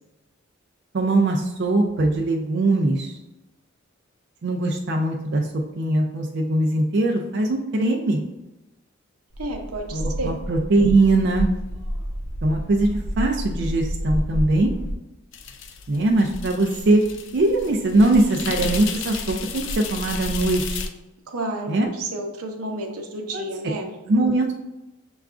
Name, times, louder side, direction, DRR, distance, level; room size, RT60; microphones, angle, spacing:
voice 1, 0.9-3.2 4.4-8.2 9.9-11.5 12.4-14.8 15.9-17.0 17.3-20.8 21.7-21.9 23.3-23.4 24.1-24.5, right 2 dB, 50° right, 1 dB, 0.4 m, -21 dB
sound 1, 9.3-14.9, equal, 75° left, 0.7 m, -29 dB
voice 2, 9.4-10.3 21.3-23.9, right 2 dB, 90° right, 3 dB, 0.7 m, -31 dB
sound 2, 15.3-20.9, left 4 dB, 55° left, 0.4 m, -32 dB
6.7 x 2.3 x 2.4 m, 0.97 s
head